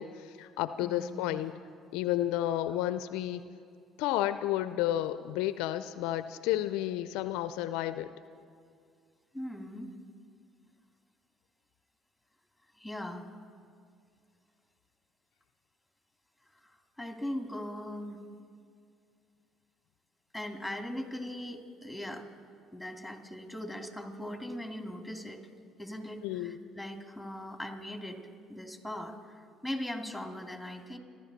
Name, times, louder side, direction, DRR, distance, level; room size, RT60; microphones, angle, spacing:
voice 1, 0.0-1.5 1.9-3.4 4.0-8.1 26.2-26.6, left 13 dB, 75° left, 13 dB, 0.4 m, -31 dB
voice 2, 0.8-1.4 9.3-10.0 12.8-13.3 16.6-18.3 20.3-22.2 22.7-25.4 25.8-28.2 28.5-31.0, left 1 dB, ahead, 3 dB, 2.6 m, -40 dB
29.0 x 12.0 x 4.1 m, 2.3 s
hypercardioid pair, 60°, 0 cm